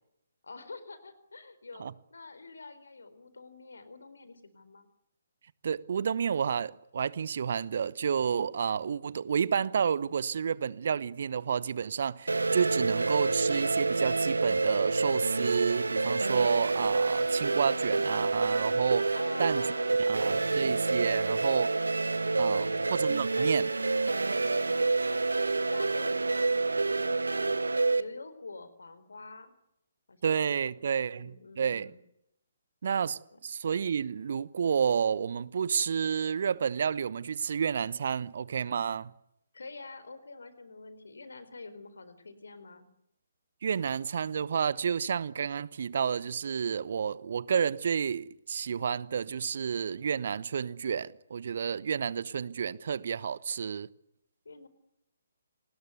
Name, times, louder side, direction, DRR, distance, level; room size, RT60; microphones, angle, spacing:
voice 1, 0.4-4.9 19.1-20.3 21.0-21.5 22.5-22.8 23.3-23.7 24.1-24.9 25.7-27.6 27.9-29.5 30.1-32.0 33.3-33.4 39.5-42.9 54.4-54.7, left 3 dB, 65° left, 4.3 m, -47 dB
voice 2, 5.6-19.6 20.1-21.7 22.4-23.7 30.2-31.9 32.8-39.1 43.6-53.9, right 7 dB, 50° right, 1.1 m, -30 dB
sound 1, 12.3-28.0, right 3 dB, 70° right, 1.4 m, -28 dB
sound 2, 13.0-25.6, left 3 dB, 15° left, 6.9 m, -61 dB
29.0 x 20.5 x 8.1 m
figure-of-eight pair, 135°, 0 cm